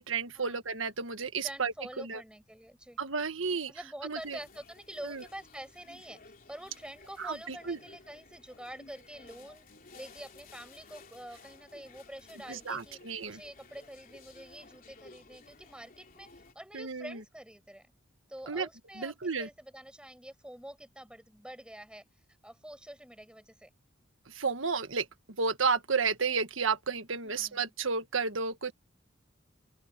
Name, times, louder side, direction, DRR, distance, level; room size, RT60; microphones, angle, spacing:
voice 1, 0.0-2.2 3.0-3.7 4.0-4.4 5.0-5.2 7.2-7.8 12.5-13.4 16.7-17.2 18.5-18.7 18.9-19.5 24.3-25.1 25.4-28.7, right 5 dB, 75° right, 1.6 m, -32 dB
voice 2, 1.4-3.0 3.7-6.2 6.5-9.7 9.9-13.0 13.3-16.3 16.5-17.9 18.3-22.0 22.4-23.7 27.2-27.7, right 1 dB, 5° right, 5.8 m, -47 dB
sound 1, 4.1-16.5, left 3 dB, 45° left, 3.3 m, -55 dB
open air
head